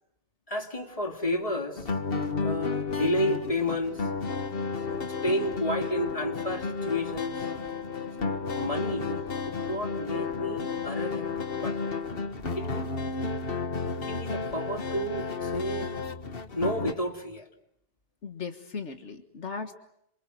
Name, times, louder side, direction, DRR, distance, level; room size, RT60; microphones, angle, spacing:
voice 1, 0.5-1.9 2.4-4.1 5.2-7.5 8.5-11.8 12.6-12.9 14.0-15.9 16.5-17.5, equal, 30° left, 4 dB, 2.7 m, -31 dB
sound 1, 1.8-16.9, left 4 dB, 55° left, 1.7 m, -32 dB
voice 2, 18.2-19.7, left 5 dB, 75° left, 7 dB, 1.9 m, -37 dB
27.5 x 26.5 x 7.8 m, 0.76 s
omnidirectional pair, 1.2 m